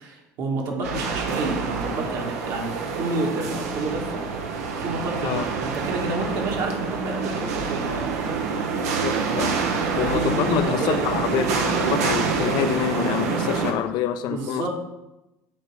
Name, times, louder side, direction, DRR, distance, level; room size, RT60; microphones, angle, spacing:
voice 1, 0.0-4.3 4.8-8.4 10.0-11.0 14.3-14.7, right 2 dB, 60° right, 0 dB, 1.7 m, -29 dB
sound 1, 0.8-13.7, right 5 dB, 85° right, 0.8 m, -26 dB
voice 2, 8.8-9.6 9.9-14.7, left 10 dB, 60° left, 11 dB, 0.5 m, -27 dB
8.3 x 3.0 x 4.8 m, 0.95 s
hypercardioid pair, 75°, 8 cm